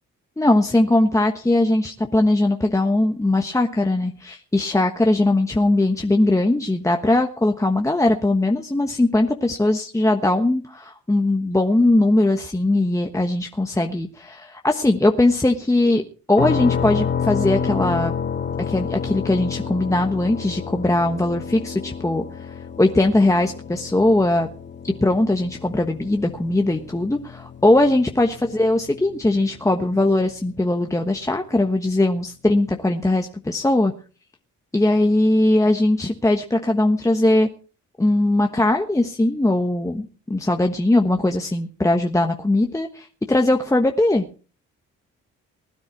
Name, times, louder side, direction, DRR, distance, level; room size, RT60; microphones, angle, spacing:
voice 1, 0.4-16.0 16.3-18.1 18.7-24.5 24.8-33.9 34.7-37.5 38.0-44.3, left 2 dB, 10° left, 3 dB, 1.2 m, -20 dB
sound 1, 16.4-30.1, left 7 dB, 35° left, 2.6 m, -30 dB
20.0 x 9.7 x 4.6 m, 0.37 s
cardioid pair, 90°, 30 cm